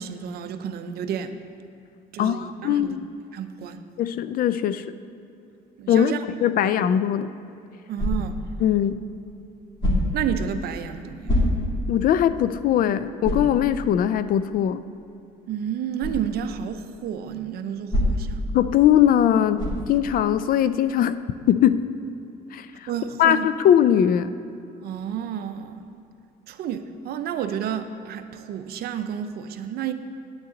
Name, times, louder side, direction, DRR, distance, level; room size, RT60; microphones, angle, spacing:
voice 1, 0.0-1.4 2.1-3.0 3.3-3.8 5.8-6.2 6.6-6.7 7.9-8.4 10.1-11.4 15.5-18.4 22.9-23.5 24.8-26.0 26.5-29.9, right 9 dB, 65° right, 9 dB, 0.7 m, -31 dB
voice 2, 2.2-3.1 4.0-4.8 5.9-6.1 6.4-7.3 8.6-9.0 11.9-14.8 18.5-21.1 21.5-21.9 22.5-22.9 23.2-24.3, left 10 dB, 60° left, 13 dB, 0.4 m, -20 dB
sound 1, 7.9-8.5 9.8-10.3 11.2-11.9 12.4-12.5 13.2-13.6 16.0-16.2 17.9-18.4 19.6-19.9, left 1 dB, 25° left, 2.6 m, -24 dB
9.6 x 9.6 x 3.9 m, 2.7 s
cardioid pair, 110°, 17 cm